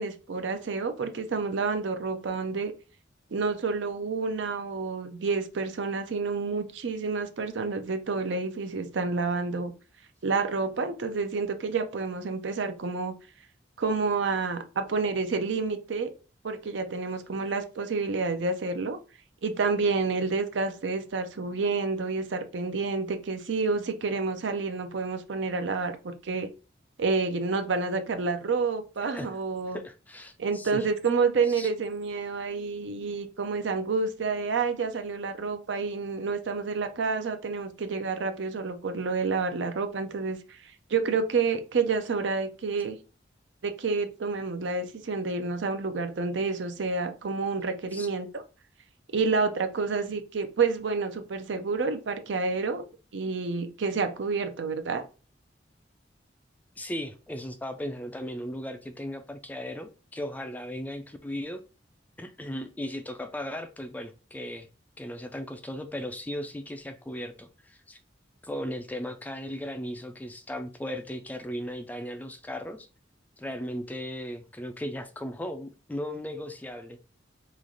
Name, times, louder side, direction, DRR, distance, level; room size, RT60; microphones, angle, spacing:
voice 1, 0.0-2.7 3.3-9.7 10.2-13.1 13.8-16.1 16.4-19.0 19.4-26.5 27.0-29.8 30.4-40.6 40.9-43.0 43.6-48.4 49.1-52.8 53.1-55.0, right 4 dB, 80° right, 0.5 m, -29 dB
voice 2, 29.0-29.4 29.7-30.9 31.5-31.7 47.9-48.1 56.8-61.6 62.2-64.7 65.0-68.0 68.4-72.9 73.4-77.0, left 1 dB, 10° left, 0.3 m, -37 dB
3.1 x 2.4 x 3.8 m
head